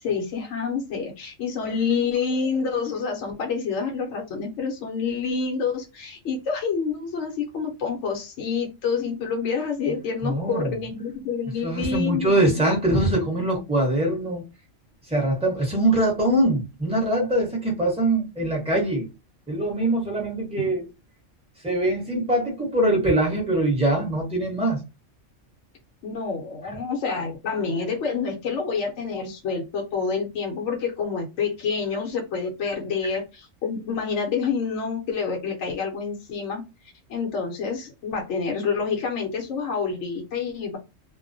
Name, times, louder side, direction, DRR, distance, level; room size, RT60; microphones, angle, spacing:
voice 1, 0.0-12.7 26.0-36.6 37.1-40.8, left 5 dB, 70° left, 0.9 m, -28 dB
voice 2, 10.2-10.7 11.6-14.4 15.1-19.1 19.5-20.9 21.6-24.8, right 1 dB, 5° right, 0.8 m, -23 dB
2.3 x 2.1 x 2.5 m
omnidirectional pair, 1.4 m